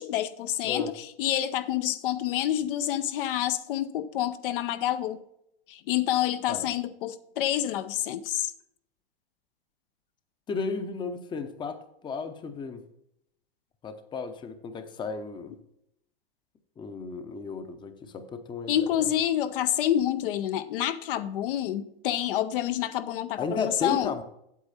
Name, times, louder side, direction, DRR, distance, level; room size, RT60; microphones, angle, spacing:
voice 1, 0.0-5.2 5.7-8.5 18.7-24.1, left 11 dB, 60° left, 11 dB, 0.6 m, -28 dB
voice 2, 10.5-12.8 13.8-15.5 16.8-18.8 23.4-24.2, left 4 dB, 15° left, 9 dB, 0.7 m, -34 dB
8.4 x 7.9 x 4.2 m, 0.77 s
hypercardioid pair, 130°, 30 cm